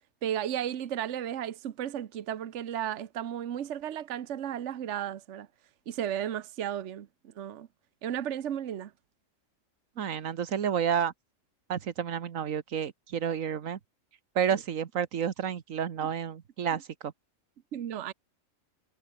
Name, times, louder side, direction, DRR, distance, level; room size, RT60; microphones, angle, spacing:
voice 1, 0.2-5.5 5.9-7.1 7.4-7.7 8.0-8.9 14.5-14.6 17.7-18.1, right 10 dB, 65° right, 1.2 m, -34 dB
voice 2, 10.0-11.1 11.7-13.8 14.3-17.1, right 8 dB, 90° right, 1.6 m, -30 dB
omnidirectional pair, 1.3 m